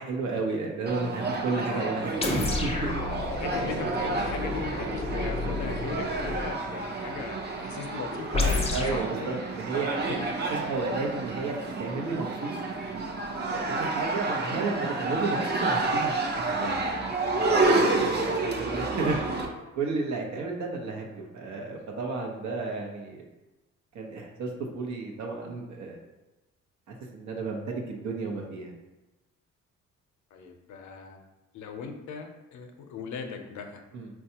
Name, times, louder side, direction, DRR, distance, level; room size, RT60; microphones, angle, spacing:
voice 1, 0.0-2.3 2.6-2.7 3.2-3.4 8.7-10.2 10.5-12.6 13.4-19.2 19.7-23.2 23.9-26.0 26.9-28.7 33.9-34.1, right 3 dB, 70° right, 0 dB, 0.8 m, -33 dB
sound 1, 0.9-19.5, right 3 dB, 35° right, 0.6 m, -30 dB
voice 2, 1.7-2.3 3.3-9.4 10.1-10.2 30.3-31.2 31.5-33.8, left 6 dB, 70° left, 5 dB, 0.6 m, -38 dB
sound 2, 2.2-6.5 8.3-9.0, left 2 dB, 20° left, 0.6 m, -30 dB
4.4 x 2.3 x 2.8 m, 1.1 s
cardioid pair, 90°, 30 cm